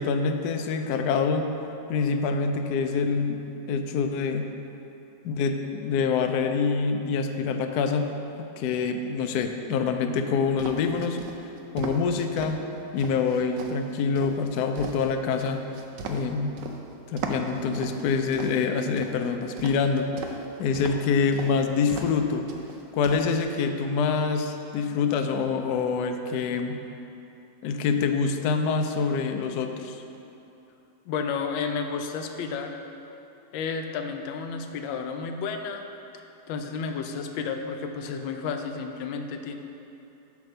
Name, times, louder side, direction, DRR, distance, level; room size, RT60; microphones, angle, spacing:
voice 1, 0.0-1.5 1.9-3.4 3.7-4.5 5.2-8.1 8.4-11.2 11.7-12.6 12.9-15.6 16.1-16.6 17.1-20.1 20.6-22.5 22.9-26.8 27.6-30.0, left 5 dB, 75° left, 5 dB, 1.0 m, -26 dB
sound 1, 10.6-12.5 13.0-16.8 17.2-19.1 19.6-20.4 20.7-21.1 21.3-21.5 21.9-22.2 22.5-23.2, right 4 dB, 75° right, 1.2 m, -37 dB
voice 2, 31.1-32.8 33.5-35.8 36.5-39.5, left 5 dB, 90° left, 5 dB, 1.4 m, -31 dB
8.2 x 3.5 x 6.5 m, 2.9 s
omnidirectional pair, 2.1 m